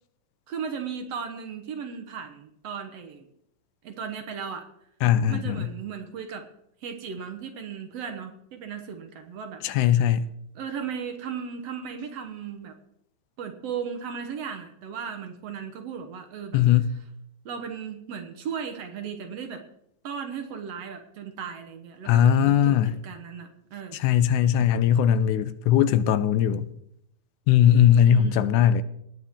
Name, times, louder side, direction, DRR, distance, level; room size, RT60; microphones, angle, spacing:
voice 1, 0.5-3.3 3.8-4.7 5.3-6.5 6.8-9.6 10.6-12.7 13.4-16.6 17.5-19.6 20.0-24.0 28.0-28.5, right 7 dB, 65° right, 1.9 m, -36 dB
voice 2, 5.0-5.7 9.6-10.2 16.5-16.9 22.1-23.0 23.9-26.7 27.5-28.8, left 10 dB, 80° left, 2.0 m, -20 dB
19.0 x 9.3 x 3.7 m
omnidirectional pair, 3.6 m